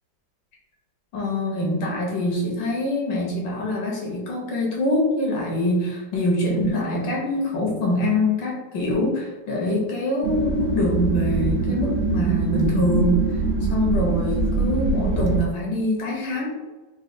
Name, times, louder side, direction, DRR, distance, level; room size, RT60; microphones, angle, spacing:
voice 1, 1.1-13.3 13.7-16.5, left 1 dB, 80° left, -3 dB, 1.6 m, -24 dB
sound 1, 10.2-15.4, right 4 dB, 90° right, 1.3 m, -23 dB
4.0 x 2.3 x 2.6 m, 1.2 s
omnidirectional pair, 2.0 m